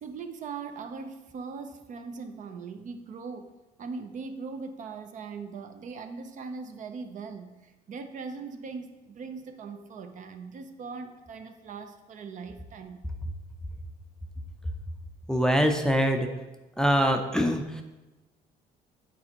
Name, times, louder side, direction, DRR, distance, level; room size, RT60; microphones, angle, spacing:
voice 1, 0.0-3.5 3.8-13.0, right 5 dB, 50° right, 7 dB, 0.5 m, -40 dB
voice 2, 15.3-16.3 16.8-17.8, equal, 5° left, 4 dB, 0.5 m, -24 dB
8.3 x 4.3 x 2.9 m, 1.1 s
cardioid pair, 110°, 17 cm